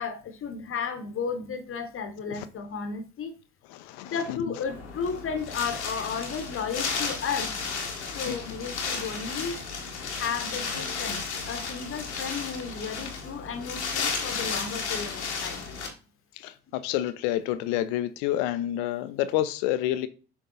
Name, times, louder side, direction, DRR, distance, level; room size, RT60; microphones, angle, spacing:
voice 1, 0.0-3.3 4.0-7.5 8.1-9.6 10.1-15.6, left 6 dB, 40° left, 1.1 m, -33 dB
voice 2, 3.7-4.4 8.3-8.4 16.4-20.1, left 13 dB, 65° left, 0.7 m, -29 dB
Wind, 4.6-15.9, left 5 dB, 90° left, 1.2 m, -33 dB
6.9 x 3.5 x 3.9 m
hypercardioid pair, 60°, 33 cm